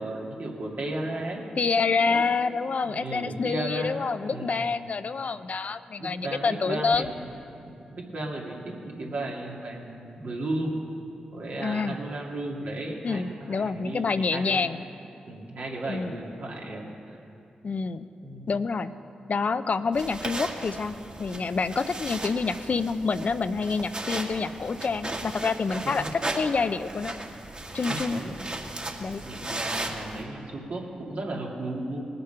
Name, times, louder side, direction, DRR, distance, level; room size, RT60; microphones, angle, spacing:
voice 1, 0.0-1.4 2.0-2.2 2.8-4.0 4.2-4.6 6.0-7.3 7.6-10.8 11.3-14.6 15.3-17.2 18.2-18.5 25.7-26.1 27.9-28.3 29.2-32.0, right 2 dB, 70° right, -2 dB, 2.4 m, -35 dB
voice 2, 1.6-7.1 11.6-11.9 13.0-14.8 15.9-16.1 17.6-18.1 18.5-18.9 19.3-27.1 27.7-28.2 29.0-29.2, left 4 dB, 55° left, 12 dB, 0.5 m, -27 dB
sound 1, 19.9-30.2, right 2 dB, 35° right, 1.9 m, -36 dB
19.5 x 6.8 x 5.6 m, 2.6 s
supercardioid pair, 40°, 3 cm